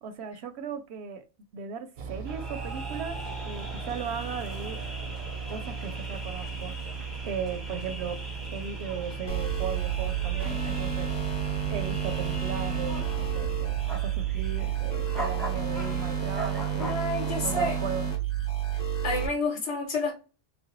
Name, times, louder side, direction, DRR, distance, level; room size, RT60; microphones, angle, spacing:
voice 1, 0.0-1.2 1.5-3.2 3.4-4.8 5.5-6.7 7.2-8.2 8.5-11.1 11.7-17.0 17.4-18.1, right 7 dB, 85° right, 0.9 m, -37 dB
sound 1, 2.0-17.0, right 5 dB, 55° right, 0.6 m, -39 dB
sound 2, 2.3-18.0, right 1 dB, ahead, 0.7 m, -41 dB
sound 3, 9.3-19.3, right 8 dB, 45° left, 0.8 m, -30 dB
voice 2, 16.8-17.8 18.7-20.1, left 2 dB, 90° left, 1.1 m, -29 dB
3.1 x 2.0 x 3.0 m
omnidirectional pair, 1.1 m